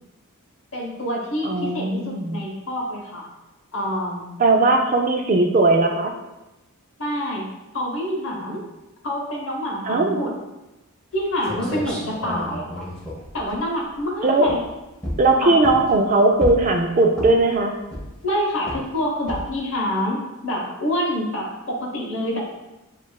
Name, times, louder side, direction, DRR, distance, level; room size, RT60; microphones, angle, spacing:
voice 1, 0.7-3.3 3.7-4.3 7.0-7.4 7.7-8.6 9.0-10.3 11.1-12.9 13.3-14.6 15.4-15.6 18.2-22.4, equal, 60° left, -1 dB, 0.9 m, -27 dB
voice 2, 1.4-2.4 4.4-6.1 9.9-10.2 14.2-14.5 15.2-17.8, right 2 dB, 35° right, 4 dB, 0.3 m, -18 dB
sound 1, 11.1-11.2 11.4-14.0 14.4-14.7 15.0-16.0 16.4-16.8 17.1-17.5 17.9-18.3 18.7-18.9 19.3-19.6, left 1 dB, 5° left, 0.7 m, -31 dB
7.2 x 2.4 x 2.2 m, 1.0 s
head